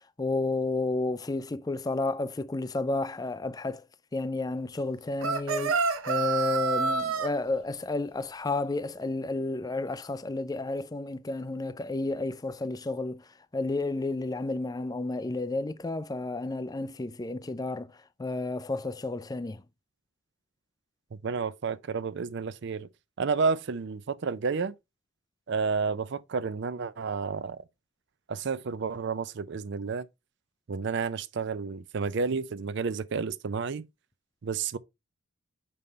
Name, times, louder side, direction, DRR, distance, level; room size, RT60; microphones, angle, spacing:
voice 1, 0.0-3.8 4.1-13.2 13.5-17.9 18.2-19.6, left 2 dB, 15° left, 0.3 m, -31 dB
sound 1, 5.2-7.3, right 4 dB, 70° right, 0.8 m, -27 dB
voice 2, 21.1-22.9 23.2-24.7 25.5-27.6 28.3-30.1 30.7-33.8 34.4-34.8, right 5 dB, 55° right, 0.4 m, -31 dB
6.7 x 5.5 x 3.2 m
head